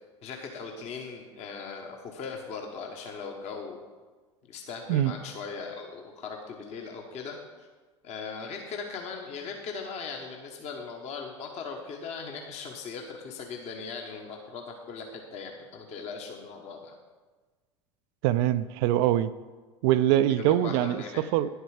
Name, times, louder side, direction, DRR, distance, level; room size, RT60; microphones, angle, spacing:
voice 1, 0.2-3.8 4.5-7.7 8.0-16.9 20.3-21.2, left 5 dB, 45° left, 2 dB, 1.3 m, -39 dB
voice 2, 18.2-19.3 19.8-21.5, right 12 dB, 55° right, 13 dB, 0.4 m, -23 dB
10.0 x 8.0 x 4.9 m, 1.3 s
figure-of-eight pair, 75°, 16 cm